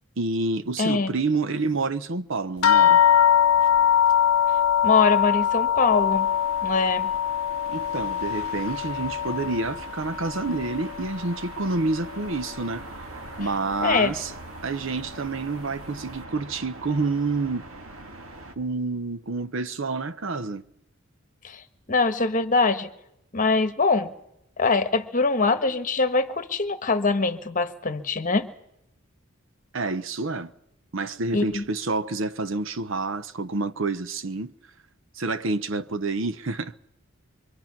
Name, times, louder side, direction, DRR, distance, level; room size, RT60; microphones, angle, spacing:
voice 1, 0.2-3.0 7.7-12.8 13.4-14.3 14.6-17.6 18.6-20.6 29.7-30.5 30.9-34.5 35.1-36.7, right 3 dB, 65° right, 0.8 m, -28 dB
voice 2, 0.8-1.1 4.8-6.3 6.6-7.1 13.8-14.1 21.4-21.6 21.9-22.9 23.3-24.1 24.6-28.5 31.3-31.6, left 4 dB, 40° left, 1.2 m, -23 dB
sound 1, 2.6-11.5 11.8-12.6 13.4-13.5 13.9-14.1, left 9 dB, 90° left, 0.8 m, -22 dB
sound 2, 5.9-18.6, right 2 dB, 85° right, 2.0 m, -42 dB
25.0 x 24.0 x 6.0 m
head